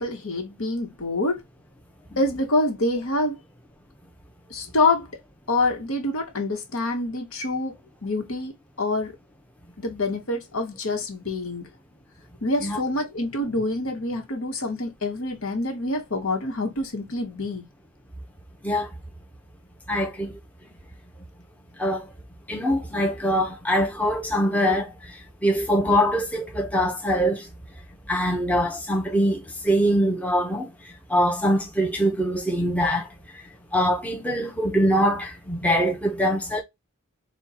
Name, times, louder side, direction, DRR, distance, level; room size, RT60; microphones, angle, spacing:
voice 1, 0.0-1.4 2.2-3.4 4.5-5.1 5.5-7.7 8.0-8.5 8.8-9.1 9.8-11.7 12.4-17.6, left 2 dB, 70° left, 1.2 m, -26 dB
voice 2, 19.9-20.3 21.8-22.0 22.5-24.9 25.4-27.5 28.1-30.7 31.1-33.1 33.7-36.6, equal, 5° left, 0.8 m, -23 dB
4.2 x 2.3 x 4.2 m
head